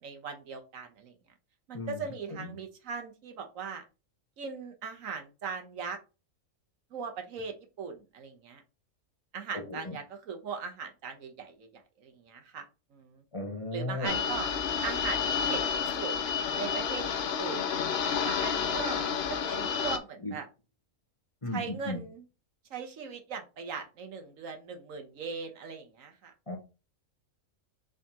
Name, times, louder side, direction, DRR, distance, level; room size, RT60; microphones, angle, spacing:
voice 1, 0.0-1.1 1.7-3.8 4.4-6.0 6.9-8.6 9.3-11.7 12.0-12.6 12.9-13.2 13.7-14.5 14.8-16.1 16.6-17.1 17.4-17.7 18.2-19.2 19.4-20.5 21.5-22.3 22.7-26.3, right 5 dB, 75° right, 5 dB, 1.3 m, -39 dB
voice 2, 13.3-14.1 20.2-20.3 21.4-22.0 26.5-26.6, left 2 dB, 25° left, 0 dB, 1.0 m, -35 dB
sound 1, 14.0-20.0, left 7 dB, 60° left, 0.7 m, -30 dB
5.0 x 3.6 x 2.9 m, 0.30 s
omnidirectional pair, 1.4 m